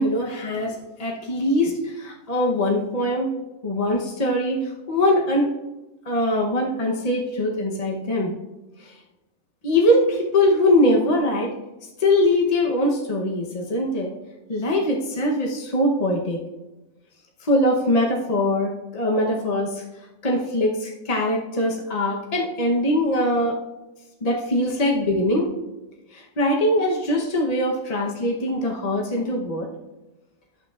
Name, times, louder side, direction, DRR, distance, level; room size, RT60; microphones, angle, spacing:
voice 1, 0.0-3.3 3.6-5.5 6.1-8.3 8.8-8.9 9.6-11.5 12.0-14.1 14.5-16.4 17.4-19.8 20.2-23.6 24.2-25.5 26.1-29.7, left 1 dB, 35° left, -1 dB, 0.6 m, -22 dB
11.0 x 8.5 x 2.4 m, 1.1 s
omnidirectional pair, 1.9 m